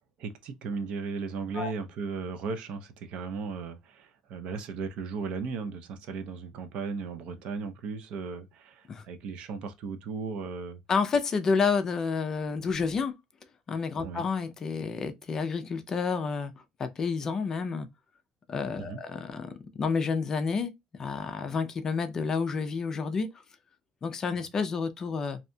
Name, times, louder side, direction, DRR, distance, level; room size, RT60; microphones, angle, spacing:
voice 1, 0.2-10.8 14.0-14.2 18.8-19.0, right 5 dB, 55° right, 0.5 m, -36 dB
voice 2, 10.9-13.1 13.7-16.5 16.8-17.9 18.5-20.7 21.0-23.3 24.0-25.4, left 5 dB, 25° left, 0.3 m, -29 dB
2.7 x 2.2 x 2.5 m
cardioid pair, 175°, 2 cm